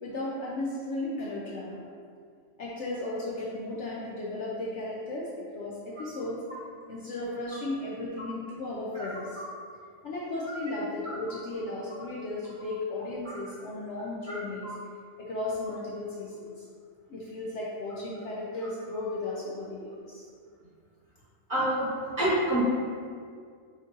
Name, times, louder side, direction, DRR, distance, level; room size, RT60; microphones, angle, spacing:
voice 1, 0.0-1.8 2.6-6.4 6.9-9.4 10.0-14.7 15.2-16.5 17.1-20.2, left 2 dB, 60° left, -5 dB, 0.8 m, -35 dB
voice 2, 21.5-21.9 22.2-22.6, right 1 dB, 35° right, -9 dB, 1.2 m, -26 dB
5.2 x 2.6 x 3.8 m, 2.1 s
omnidirectional pair, 1.6 m